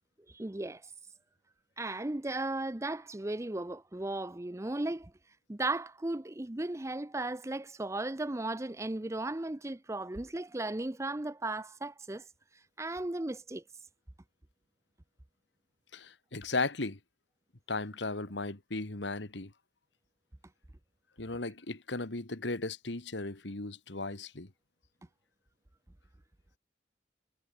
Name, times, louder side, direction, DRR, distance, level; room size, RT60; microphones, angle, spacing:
voice 1, 0.3-0.9 1.8-5.1 5.5-12.2 12.8-13.6, right 2 dB, 15° right, 0.6 m, -36 dB
voice 2, 15.9-17.0 17.7-19.5 21.2-24.5, left 3 dB, 75° left, 2.0 m, -36 dB
head